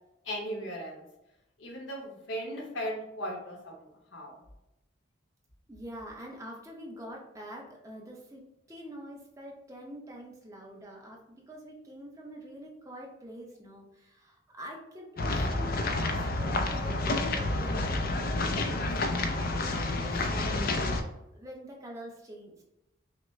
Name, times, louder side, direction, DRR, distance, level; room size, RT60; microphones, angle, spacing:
voice 1, 0.2-1.0 1.6-4.4, equal, 70° left, 0 dB, 1.1 m, -37 dB
voice 2, 5.7-22.6, equal, 15° right, -1 dB, 0.8 m, -46 dB
sound 1, 15.2-21.0, left 2 dB, 45° left, 0.5 m, -29 dB
5.9 x 2.2 x 3.2 m, 0.89 s
head